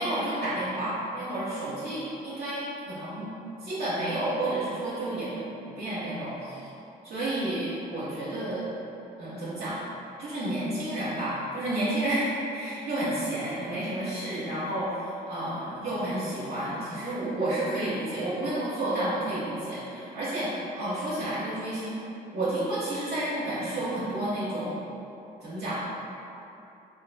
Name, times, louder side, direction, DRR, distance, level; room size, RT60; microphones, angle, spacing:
voice 1, 0.0-3.3 3.6-6.7 7.0-8.6 9.2-9.8 10.2-22.0 22.3-24.8 25.4-25.8, right 1 dB, 65° right, -11 dB, 0.8 m, -31 dB
3.2 x 2.5 x 2.7 m, 2.8 s
cardioid pair, 85°, 18 cm